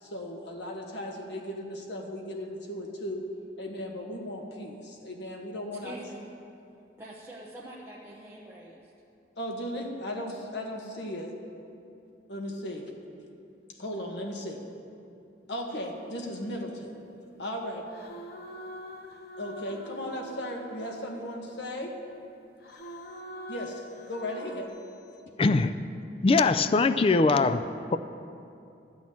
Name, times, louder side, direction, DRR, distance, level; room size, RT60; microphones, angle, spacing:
voice 1, 0.0-3.3 3.6-6.0 9.4-11.3 12.3-12.8 13.8-14.6 15.5-16.9 17.4-17.9 19.4-21.9 23.5-24.8, equal, 75° left, 1 dB, 1.5 m, -36 dB
voice 2, 5.8-6.2 7.0-8.8, right 1 dB, 15° right, -5 dB, 0.9 m, -44 dB
sound 1, 15.8-17.3 17.9-21.7 22.6-24.7, equal, 55° left, 0.9 m, -45 dB
voice 3, 25.4-25.8 26.2-27.6 27.9-28.0, left 3 dB, 30° left, 11 dB, 0.3 m, -22 dB
12.0 x 6.2 x 8.5 m, 2.6 s
head